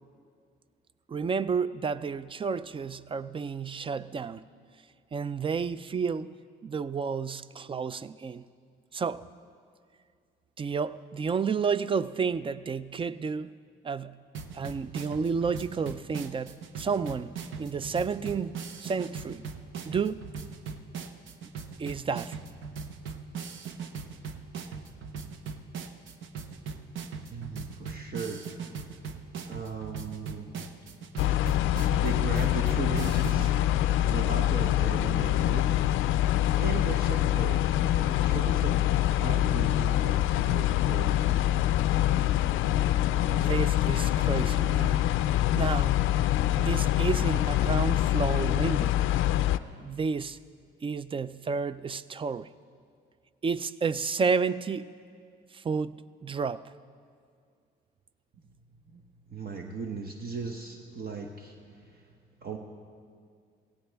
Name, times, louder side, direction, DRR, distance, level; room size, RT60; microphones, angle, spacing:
voice 1, 1.1-4.5 5.1-6.3 6.6-8.4 8.9-9.3 10.6-13.5 13.8-14.2 14.5-19.4 19.9-20.3 21.8-22.4 43.3-45.1 45.6-46.0 46.6-48.9 49.8-50.4 50.8-52.5 53.4-54.9 55.5-56.6, right 5 dB, 25° right, 0.4 m, -31 dB
sound 1, 14.3-33.5, right 5 dB, 75° right, 0.8 m, -40 dB
voice 2, 27.3-28.4 29.4-30.5 31.9-35.7 36.6-42.1 58.9-59.0 59.3-61.6 61.8-62.0 62.4-62.6, right 4 dB, 50° right, 1.1 m, -37 dB
sound 2, 31.2-49.6, left 13 dB, 85° left, 0.4 m, -25 dB
17.5 x 16.0 x 3.4 m
cardioid pair, 90°, 20 cm